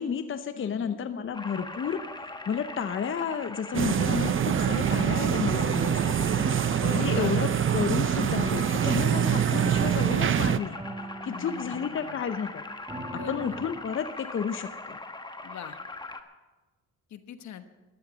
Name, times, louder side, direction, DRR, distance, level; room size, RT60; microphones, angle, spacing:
voice 1, 0.0-2.0 2.5-6.3 7.0-10.8 11.2-12.6 13.3-15.0, left 7 dB, 40° left, 9 dB, 0.8 m, -31 dB
voice 2, 0.6-1.0 6.0-7.4 11.3-12.2 13.1-13.6 15.4-15.8 17.1-17.6, left 9 dB, 65° left, 9 dB, 1.2 m, -42 dB
sound 1, 1.3-16.2, left 2 dB, 15° left, 1.2 m, -41 dB
sound 2, 3.7-10.6, right 9 dB, 40° right, 0.6 m, -25 dB
sound 3, 7.7-13.7, right 1 dB, 15° right, 1.7 m, -44 dB
14.0 x 11.5 x 6.2 m, 1.2 s
cardioid pair, 90°, 30 cm